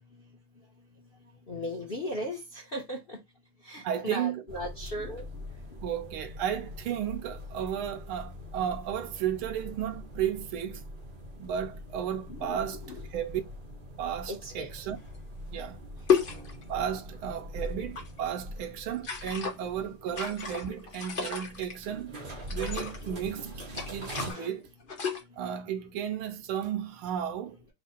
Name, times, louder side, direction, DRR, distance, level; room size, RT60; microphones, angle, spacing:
voice 1, 1.5-3.2 3.6-5.3 12.3-13.0 14.3-14.7 24.2-24.6, equal, 45° left, 0.7 m, -37 dB
voice 2, 3.8-4.4 5.8-10.9 11.4-12.8 13.1-13.4 14.0-15.0 15.5-15.8 16.7-22.1 22.5-23.5 23.9-24.7 25.4-27.6, right 9 dB, 80° right, 1.5 m, -33 dB
sound 1, 4.5-24.3, equal, 60° right, 0.5 m, -43 dB
sound 2, 15.1-15.2 16.1-16.8 17.8-18.3 18.9-19.6 20.1-21.7 22.5-23.1 23.7-24.4 24.8-25.2, left 6 dB, 85° left, 0.4 m, -31 dB
3.6 x 2.8 x 4.2 m
omnidirectional pair, 2.4 m